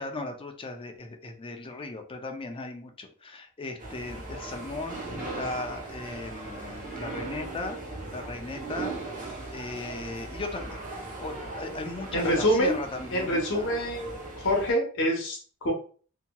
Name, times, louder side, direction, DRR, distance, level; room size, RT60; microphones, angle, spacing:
voice 1, 0.0-7.8 8.1-8.9 9.5-10.8 11.2-13.7, left 2 dB, 25° left, 5 dB, 0.4 m, -37 dB
sound 1, 3.8-14.7, right 2 dB, 35° right, 0.9 m, -38 dB
voice 2, 12.1-12.8 13.1-14.2 14.4-15.7, equal, 60° left, -1 dB, 0.8 m, -26 dB
2.8 x 2.7 x 2.2 m, 0.41 s
head